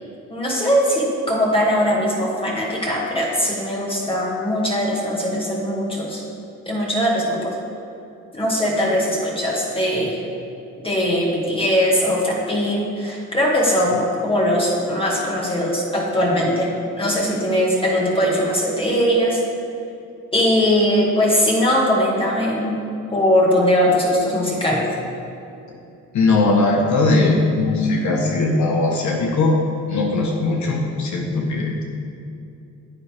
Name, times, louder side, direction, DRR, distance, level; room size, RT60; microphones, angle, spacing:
voice 1, 0.3-6.2 6.7-7.5 8.3-10.2 10.8-16.7 17.0-19.4 20.3-22.7 23.1-24.8, equal, 15° left, -4 dB, 2.0 m, -20 dB
voice 2, 26.1-29.6 29.9-31.8, left 2 dB, 70° left, -1 dB, 1.3 m, -19 dB
9.8 x 8.5 x 3.6 m, 2.6 s
cardioid pair, 90°, 30 cm